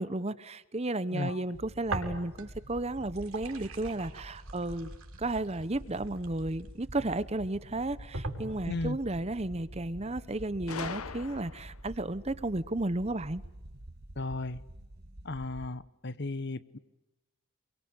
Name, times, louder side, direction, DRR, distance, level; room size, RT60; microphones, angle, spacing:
voice 1, 0.0-4.9 5.2-13.4, right 2 dB, 30° right, 0.9 m, -33 dB
voice 2, 1.1-1.4 8.7-9.0 14.2-14.6 15.2-16.8, left 2 dB, 50° left, 1.1 m, -35 dB
sound 1, 1.5-15.7, right 1 dB, 50° right, 1.6 m, -48 dB
sound 2, 1.9-2.7 3.0-6.9 7.5-7.6 8.1-9.0, right 2 dB, 75° right, 5.9 m, -40 dB
Gunshot gunfire, 10.7-11.9, left 6 dB, 80° left, 1.0 m, -40 dB
28.0 x 23.5 x 8.7 m
head